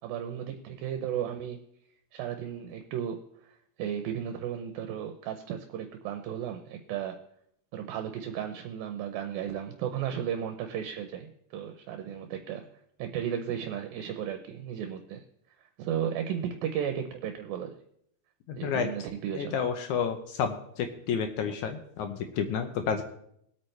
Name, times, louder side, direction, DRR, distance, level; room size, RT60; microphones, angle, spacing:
voice 1, 0.0-1.6 2.1-3.2 3.8-7.2 7.7-12.6 13.0-15.2 15.8-17.7 18.5-19.6, right 9 dB, 80° right, 5 dB, 2.4 m, -34 dB
voice 2, 18.5-18.9 19.3-23.0, left 7 dB, 80° left, 7 dB, 1.7 m, -30 dB
21.5 x 8.6 x 3.3 m, 0.72 s
omnidirectional pair, 4.4 m